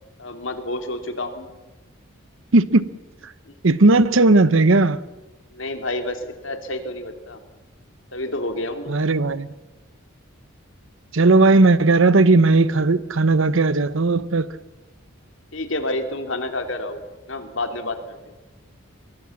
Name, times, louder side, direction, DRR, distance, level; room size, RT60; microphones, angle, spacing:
voice 1, 0.2-1.5 5.5-7.4 8.1-9.0 15.5-17.0 17.3-18.3, left 2 dB, 65° left, 2.8 m, -29 dB
voice 2, 2.5-2.9 3.6-5.0 8.9-9.5 11.1-14.5, right 3 dB, 65° right, 0.9 m, -16 dB
24.0 x 22.0 x 7.2 m
head